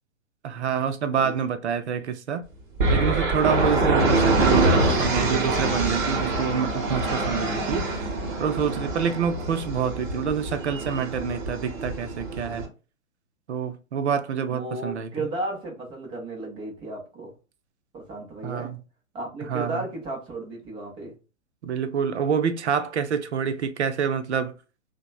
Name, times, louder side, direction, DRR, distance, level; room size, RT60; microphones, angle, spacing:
voice 1, 0.4-2.4 2.9-8.1 8.4-12.7 13.5-15.3 18.4-18.8 19.5-19.8 21.6-24.5, right 7 dB, 60° right, 0.5 m, -27 dB
sound 1, 2.8-12.7, right 2 dB, 40° right, 1.0 m, -25 dB
voice 2, 14.5-17.3 17.9-18.7 19.1-21.1, right 2 dB, 15° right, 0.6 m, -34 dB
2.9 x 2.1 x 2.3 m
figure-of-eight pair, 115°, 39 cm